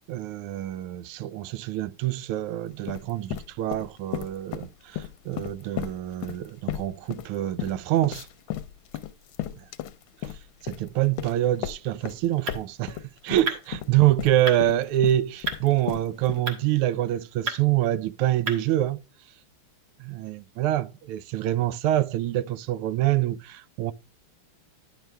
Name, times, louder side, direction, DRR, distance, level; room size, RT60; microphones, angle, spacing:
voice 1, 0.0-8.3 9.5-9.6 10.2-10.3 10.6-19.0 20.0-23.9, right 13 dB, 80° right, 1.4 m, -26 dB
sound 1, 2.7-4.7 4.9-12.2 12.5-16.4, left 12 dB, 75° left, 1.4 m, -34 dB
sound 2, 11.9-19.1, right 3 dB, 50° right, 2.0 m, -38 dB
10.5 x 6.8 x 3.3 m
omnidirectional pair, 2.4 m